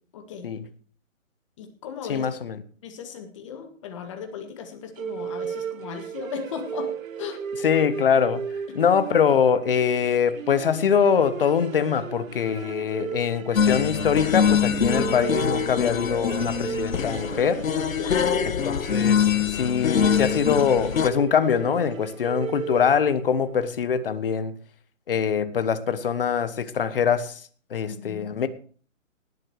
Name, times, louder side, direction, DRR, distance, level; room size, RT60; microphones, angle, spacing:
voice 1, 0.1-0.5 1.6-2.3 2.8-7.4 8.7-8.8 18.0-18.5 27.9-28.3, left 7 dB, 25° left, 1.8 m, -36 dB
voice 2, 2.1-2.6 7.6-8.4 8.7-17.6 18.9-24.5 25.1-27.4 27.7-28.5, left 7 dB, 45° left, 1.2 m, -23 dB
sound 1, 5.0-23.5, right 7 dB, 80° right, 1.2 m, -35 dB
sound 2, 13.6-21.1, left 7 dB, 85° left, 1.1 m, -24 dB
18.5 x 8.1 x 4.7 m
hypercardioid pair, 170°, 39 cm